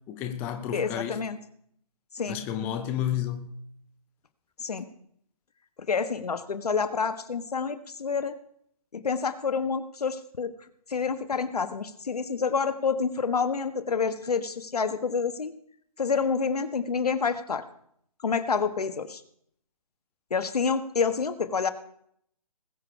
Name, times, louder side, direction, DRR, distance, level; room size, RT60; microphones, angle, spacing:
voice 1, 0.1-1.2 2.3-3.5, left 10 dB, 10° left, 6 dB, 0.5 m, -31 dB
voice 2, 0.7-1.4 2.1-2.4 4.6-4.8 5.9-8.3 8.9-10.5 10.9-15.5 16.0-17.6 18.2-19.2 20.3-21.7, left 5 dB, 80° left, 10 dB, 1.5 m, -28 dB
20.0 x 7.3 x 4.7 m, 0.67 s
hypercardioid pair, 160°, 19 cm